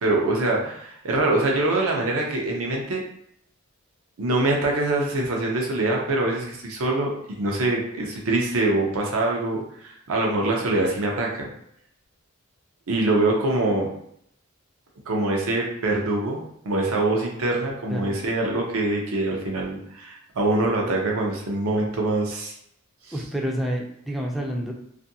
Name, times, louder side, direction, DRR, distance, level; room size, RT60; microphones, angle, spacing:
voice 1, 0.0-3.0 4.2-11.5 12.9-13.9 15.1-22.5, right 2 dB, 75° right, 0 dB, 0.6 m, -24 dB
voice 2, 23.1-24.7, equal, ahead, -1 dB, 0.4 m, -28 dB
2.6 x 2.5 x 2.7 m, 0.71 s
head